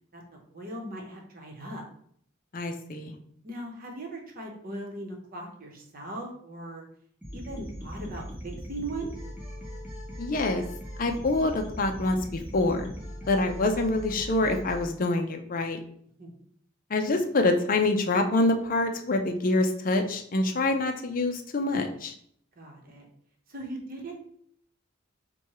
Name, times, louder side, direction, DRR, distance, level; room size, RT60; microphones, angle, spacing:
voice 1, 0.1-1.8 3.4-6.9 7.3-9.1 16.2-16.4 22.6-23.1 23.5-24.2, right 1 dB, 45° right, 1 dB, 0.9 m, -39 dB
voice 2, 2.5-3.2 10.2-10.6 11.0-12.9 13.3-15.8 16.9-22.1, left 2 dB, 40° left, 5 dB, 0.5 m, -26 dB
sound 1, 7.2-14.9, equal, 10° right, 0.9 m, -40 dB
4.2 x 2.3 x 4.7 m, 0.64 s
head